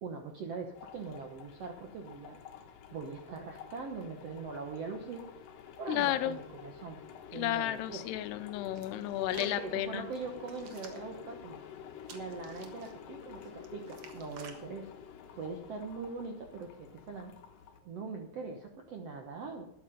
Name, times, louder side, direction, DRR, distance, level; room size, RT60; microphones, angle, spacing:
voice 1, 0.0-2.4 2.9-5.2 5.8-7.0 7.3-8.0 9.4-11.6 12.1-14.9 15.3-17.3 17.8-19.6, right 4 dB, 80° right, 3 dB, 1.4 m, -42 dB
sound 1, 0.7-17.8, left 8 dB, 65° left, 2.5 m, -50 dB
voice 2, 5.9-6.4 7.3-10.1, left 13 dB, 85° left, 12 dB, 2.8 m, -32 dB
Hands, 8.7-9.6 10.1-11.1 12.0-12.9 13.4-14.6 15.3-15.6, right 6 dB, 60° right, 1.5 m, -52 dB
12.5 x 10.5 x 5.2 m, 0.74 s
omnidirectional pair, 4.7 m